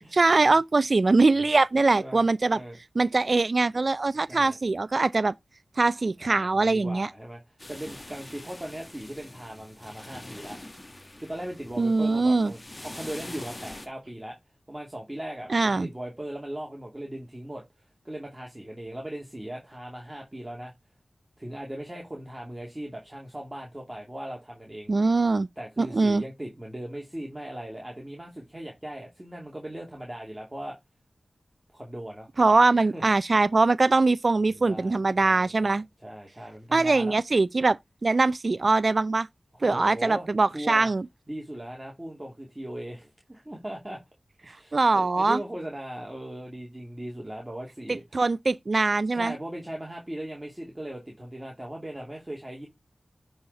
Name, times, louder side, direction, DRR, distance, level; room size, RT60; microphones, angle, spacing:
voice 1, 0.1-2.6 3.0-5.3 5.8-7.1 11.8-12.5 15.5-15.9 24.9-25.5 25.8-26.2 32.4-35.8 36.7-39.3 39.6-41.0 44.7-45.4 47.9-49.3, right 3 dB, 60° right, 0.4 m, -22 dB
voice 2, 1.9-2.8 4.3-4.6 6.2-10.6 11.2-14.4 14.7-17.6 18.0-20.7 21.4-24.9 25.6-30.8 31.7-32.3 32.7-33.0 34.5-37.2 39.6-40.3 40.5-40.9 41.3-44.0 44.4-48.0 49.1-52.7, right 1 dB, 20° right, 2.5 m, -39 dB
sound 1, 7.6-13.9, left 1 dB, 30° left, 1.4 m, -44 dB
9.5 x 4.2 x 4.7 m
cardioid pair, 40°, 0 cm